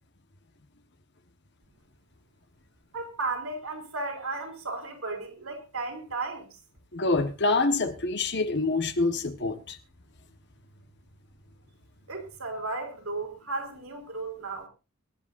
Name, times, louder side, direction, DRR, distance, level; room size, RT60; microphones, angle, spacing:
voice 1, 2.9-6.5 12.1-14.7, right 3 dB, 75° right, 3.9 m, -34 dB
voice 2, 6.9-9.8, left 3 dB, 55° left, 1.4 m, -26 dB
23.0 x 11.0 x 2.7 m
head